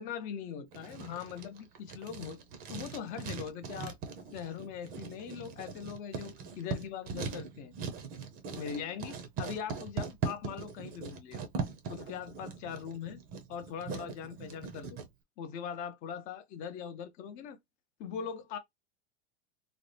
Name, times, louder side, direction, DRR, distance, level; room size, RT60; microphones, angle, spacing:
voice 1, 0.0-2.4 2.7-4.0 4.3-7.7 8.6-11.4 11.9-13.2 13.5-15.0 15.4-17.6 18.0-18.6, left 8 dB, 25° left, 0.4 m, -41 dB
Writing, 0.7-15.1, right 5 dB, 25° right, 0.5 m, -40 dB
4.0 x 2.0 x 3.2 m
supercardioid pair, 160°, 34 cm